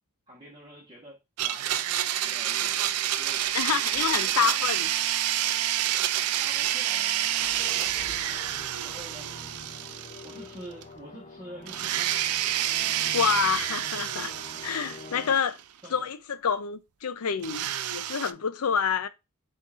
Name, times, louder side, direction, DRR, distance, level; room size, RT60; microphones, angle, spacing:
voice 1, 0.3-4.7 6.4-9.3 10.2-12.2 15.8-16.1, right 1 dB, 20° right, 1.2 m, -48 dB
Domestic sounds home sounds, 1.4-10.5 10.8-10.9 11.7-15.6 17.4-18.3, right 12 dB, 75° right, 0.4 m, -28 dB
sound 1, 3.3-9.5, right 1 dB, 15° left, 1.2 m, -48 dB
voice 2, 3.5-4.9 12.8-14.3 14.6-15.6 15.9-19.1, left 7 dB, 75° left, 0.5 m, -28 dB
sound 2, 7.6-15.3, left 2 dB, 30° left, 0.6 m, -46 dB
7.5 x 2.6 x 2.4 m
head